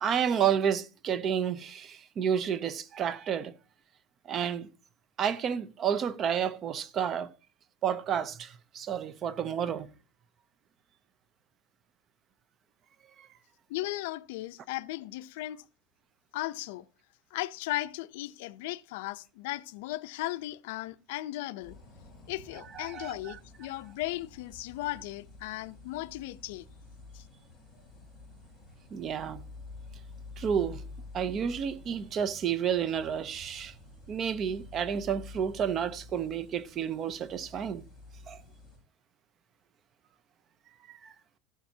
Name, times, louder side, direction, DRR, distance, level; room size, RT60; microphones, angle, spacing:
voice 1, 0.0-3.5 4.3-4.7 5.2-7.3 7.8-9.9 13.2-13.3 22.7-23.4 28.9-29.4 30.4-30.8 31.1-33.7 34.1-37.8 38.3-38.4 40.9-41.1, right 8 dB, 25° right, 0.6 m, -30 dB
voice 2, 13.7-15.6 16.3-16.9 17.3-21.8 22.3-26.7 27.1-27.2, left 17 dB, 70° left, 0.6 m, -36 dB
sound 1, 21.6-38.8, left 3 dB, ahead, 7.2 m, -49 dB
14.0 x 12.0 x 2.8 m
supercardioid pair, 165°, 0 cm